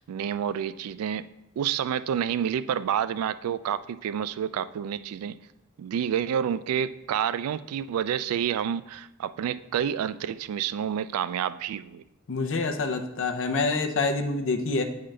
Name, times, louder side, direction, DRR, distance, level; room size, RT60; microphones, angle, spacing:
voice 1, 0.1-1.2 1.6-5.4 5.8-12.0, right 9 dB, 90° right, 15 dB, 0.3 m, -29 dB
voice 2, 12.3-14.8, left 3 dB, 60° left, 5 dB, 0.6 m, -26 dB
8.7 x 3.8 x 3.2 m, 0.89 s
head